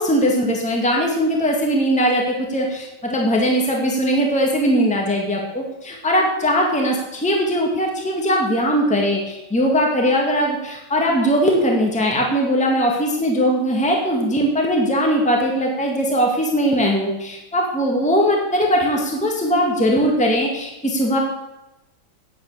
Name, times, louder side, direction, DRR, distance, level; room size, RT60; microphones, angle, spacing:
voice 1, 0.0-21.2, equal, 5° left, 0 dB, 2.1 m, -20 dB
9.8 x 8.0 x 8.1 m, 0.94 s
omnidirectional pair, 2.3 m